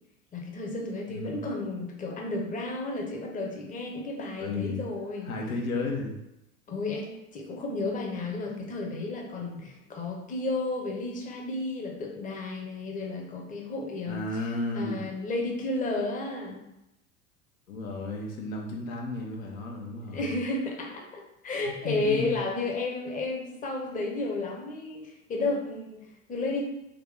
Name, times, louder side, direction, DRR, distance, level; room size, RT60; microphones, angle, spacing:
voice 1, 0.3-5.3 6.7-14.4 14.7-16.6 20.1-26.6, left 2 dB, 20° left, 0 dB, 0.9 m, -32 dB
voice 2, 1.1-1.5 4.4-4.8 5.2-6.2 14.1-15.1 17.7-20.4 21.8-22.4, left 2 dB, 70° left, 0 dB, 1.0 m, -33 dB
3.7 x 3.0 x 3.6 m, 0.88 s
hypercardioid pair, 85°, 43 cm